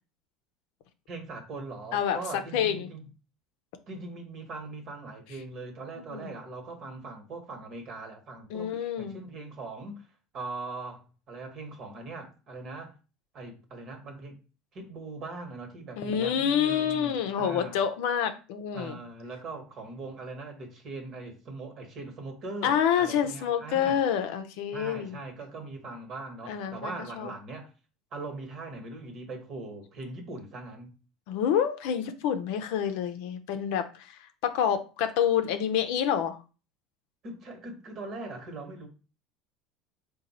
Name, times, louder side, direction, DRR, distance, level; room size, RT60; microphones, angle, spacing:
voice 1, 1.1-3.1 3.9-10.1 10.3-12.9 13.3-14.4 14.7-17.8 18.7-24.0 24.7-27.7 28.1-30.9 37.2-38.9, right 3 dB, 50° right, 1.2 m, -41 dB
voice 2, 2.5-2.9 6.1-6.3 8.5-9.2 16.0-19.0 22.6-25.2 26.5-27.3 31.3-33.9 34.4-36.4, left 8 dB, 70° left, 0.5 m, -27 dB
4.0 x 2.3 x 4.2 m
hypercardioid pair, 85°, 0 cm